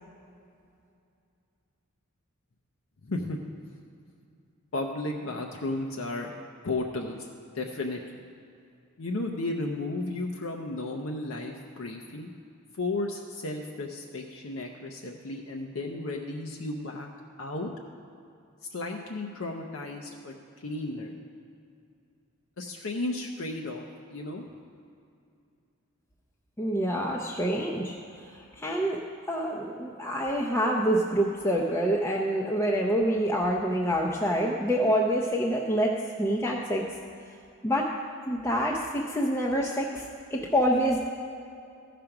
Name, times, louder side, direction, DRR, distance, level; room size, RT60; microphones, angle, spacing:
voice 1, 3.0-3.4 4.7-6.3 6.6-7.3 7.5-8.0 9.0-12.3 12.7-17.1 17.4-17.7 18.7-21.2 22.6-23.8 24.1-24.4, left 2 dB, 65° left, 0 dB, 0.7 m, -34 dB
voice 2, 26.6-29.0 29.3-36.8 37.6-37.9 38.3-41.0, equal, 10° left, -2 dB, 0.5 m, -27 dB
14.0 x 5.1 x 5.9 m, 2.5 s
head